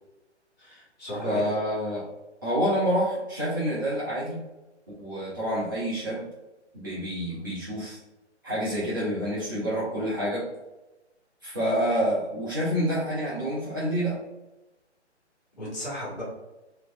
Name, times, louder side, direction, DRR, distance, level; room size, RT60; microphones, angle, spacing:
voice 1, 0.6-1.4 15.5-16.2, equal, 35° left, -7 dB, 1.3 m, -35 dB
voice 2, 1.2-2.1 2.4-4.4 5.0-6.3 6.7-8.0 8.4-10.5 11.4-14.2, equal, 20° right, -10 dB, 0.4 m, -28 dB
2.9 x 2.5 x 2.6 m, 1.0 s
figure-of-eight pair, 135°, 35 cm